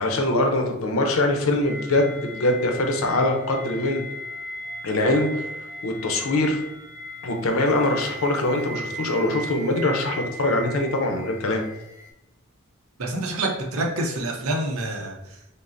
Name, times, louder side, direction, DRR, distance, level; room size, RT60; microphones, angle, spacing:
voice 1, 0.0-4.0 4.8-5.4 5.8-6.6 7.2-11.6, left 2 dB, 80° left, 3 dB, 0.6 m, -23 dB
sound 1, 1.6-12.1, equal, 15° right, 0.3 m, -38 dB
voice 2, 13.0-15.6, right 2 dB, 90° right, 1 dB, 0.7 m, -28 dB
5.2 x 2.0 x 2.6 m, 0.88 s
head